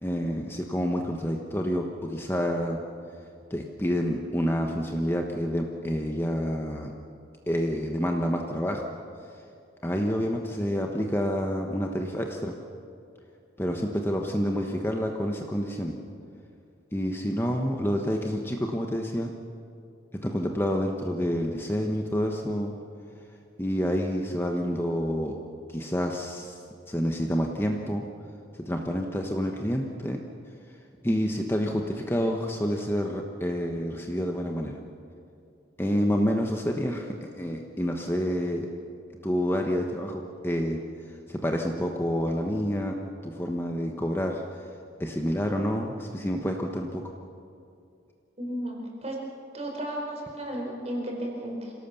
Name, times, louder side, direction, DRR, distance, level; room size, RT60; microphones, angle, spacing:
voice 1, 0.0-2.8 3.5-6.9 7.5-8.8 9.8-12.5 13.6-15.9 16.9-19.3 20.2-22.7 23.6-25.4 25.7-26.6 26.9-28.0 28.7-30.2 31.0-34.7 35.8-38.7 39.2-40.8 41.3-43.0 43.2-44.4 45.0-47.0, equal, 15° left, 2 dB, 1.1 m, -28 dB
voice 2, 48.4-49.2 49.5-51.7, right 1 dB, 35° right, 0 dB, 4.8 m, -34 dB
26.5 x 17.5 x 7.1 m, 2.5 s
head